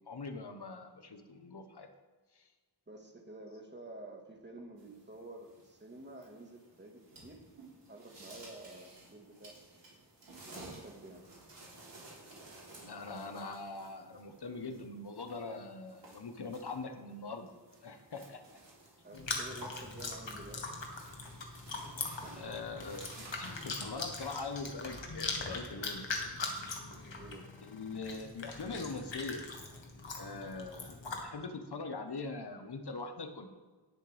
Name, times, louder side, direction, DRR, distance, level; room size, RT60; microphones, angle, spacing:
voice 1, 0.1-1.9 2.3-2.4 12.8-17.5 17.8-18.4 21.8-22.0 22.3-26.1 26.5-26.8 27.6-29.4 30.1-33.5, left 3 dB, 65° left, 6 dB, 1.3 m, -42 dB
voice 2, 2.9-7.4 7.9-9.6 10.5-11.2 19.0-20.6 22.2-22.3 27.1-27.5, right 1 dB, 25° right, 2 dB, 1.8 m, -50 dB
sound 1, 4.8-24.5, right 2 dB, 75° right, 3.6 m, -55 dB
Chewing mastication, 19.1-31.2, left 3 dB, 85° left, 1.6 m, -41 dB
18.5 x 6.5 x 3.5 m, 1.4 s
wide cardioid pair, 65°, 43 cm